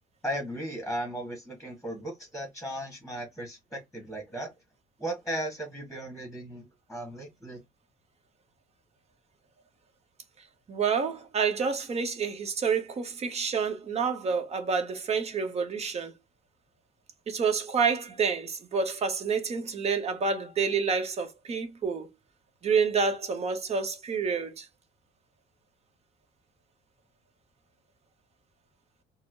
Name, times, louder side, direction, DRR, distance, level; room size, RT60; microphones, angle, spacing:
voice 1, 0.2-4.5 5.0-7.6, right 1 dB, ahead, 1.3 m, -36 dB
voice 2, 10.7-16.1 17.3-22.1 22.6-24.7, right 5 dB, 40° right, 1.0 m, -28 dB
4.1 x 2.0 x 2.5 m
cardioid pair, 110°, 17 cm